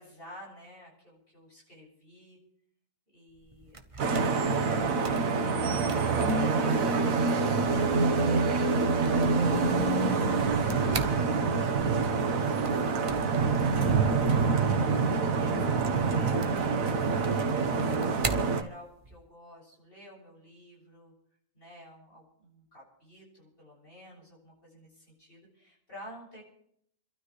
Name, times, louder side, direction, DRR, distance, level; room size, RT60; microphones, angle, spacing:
voice 1, 0.0-2.4 3.1-3.9 4.1-4.9 5.8-8.0 8.5-11.1 11.5-16.4 16.7-17.9 18.4-21.1 21.5-26.4, left 1 dB, 45° left, -3 dB, 7.3 m, -50 dB
sound 1, 3.3-19.3, right 3 dB, 30° right, 0.9 m, -43 dB
Vehicle horn car horn honking / Traffic noise roadway noise, 4.0-18.6, right 4 dB, 90° right, 1.6 m, -26 dB
29.0 x 12.5 x 3.2 m, 0.69 s
omnidirectional pair, 1.4 m